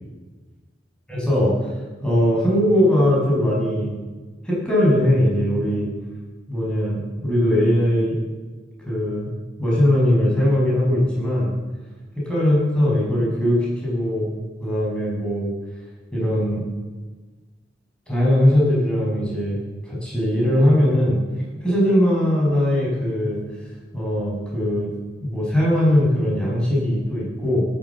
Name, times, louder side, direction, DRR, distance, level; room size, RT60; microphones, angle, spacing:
voice 1, 1.1-1.5 2.0-3.9 4.4-5.9 6.5-8.2 8.9-9.3 9.6-11.5 12.1-15.5 16.1-16.6 18.1-21.2 21.6-23.4 23.9-24.9 25.2-27.6, left 1 dB, 5° left, -5 dB, 6.2 m, -20 dB
18.0 x 10.5 x 7.3 m, 1.3 s
head